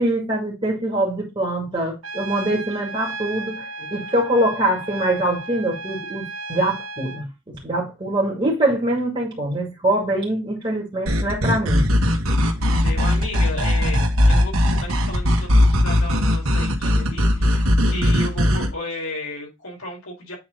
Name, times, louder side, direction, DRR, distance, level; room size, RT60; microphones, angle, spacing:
voice 1, 0.0-11.9, right 1 dB, 25° right, 2.5 m, -23 dB
Trumpet, 2.0-7.3, right 3 dB, 65° right, 1.3 m, -34 dB
sound 1, 11.1-18.7, left 1 dB, 90° right, 1.7 m, -19 dB
voice 2, 12.3-20.3, left 2 dB, 80° left, 4.8 m, -34 dB
8.6 x 4.2 x 3.8 m
head